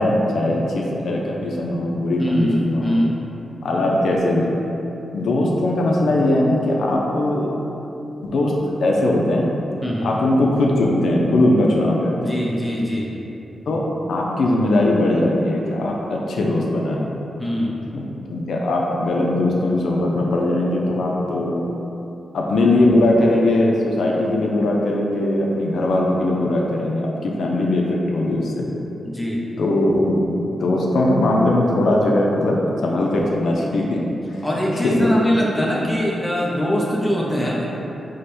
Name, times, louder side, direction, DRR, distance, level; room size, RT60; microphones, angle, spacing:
voice 1, 0.0-3.0 3.6-4.6 5.1-7.5 8.2-9.5 10.0-12.4 13.7-17.1 17.9-21.7 22.3-28.7 29.6-32.6 32.8-34.0 34.3-34.4 34.8-35.2 35.8-36.1, left 1 dB, 70° left, -1 dB, 0.5 m, -20 dB
voice 2, 2.2-3.2 9.8-10.2 12.2-13.1 17.4-17.8 29.0-29.4 34.4-37.8, equal, 5° left, -4 dB, 0.5 m, -22 dB
4.8 x 2.2 x 4.2 m, 2.9 s
wide cardioid pair, 155°, 0 cm